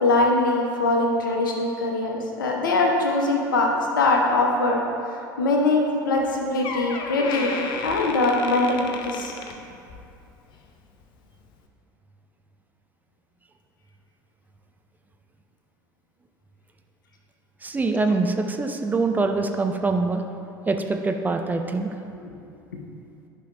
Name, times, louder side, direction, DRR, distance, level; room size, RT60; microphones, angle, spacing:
voice 1, 0.0-4.8 5.4-9.3, left 2 dB, 75° left, 1 dB, 0.9 m, -22 dB
Door, 6.2-6.3 6.6-10.1 10.5-10.8 11.5-11.6, left 4 dB, 45° left, 0.7 m, -33 dB
voice 2, 17.6-20.2 20.7-21.9, right 3 dB, 15° right, 5 dB, 0.5 m, -24 dB
11.5 x 5.6 x 2.6 m, 2.6 s
figure-of-eight pair, 70°, 11 cm